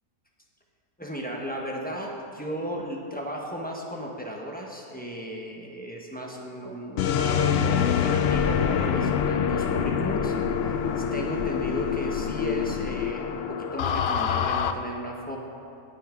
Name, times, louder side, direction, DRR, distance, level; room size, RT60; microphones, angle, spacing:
voice 1, 1.0-10.3 10.6-15.4, equal, 5° left, -1 dB, 0.9 m, -35 dB
sound 1, 7.0-14.7, left 8 dB, 85° left, 0.5 m, -25 dB
19.0 x 6.6 x 3.8 m, 2.7 s
omnidirectional pair, 1.6 m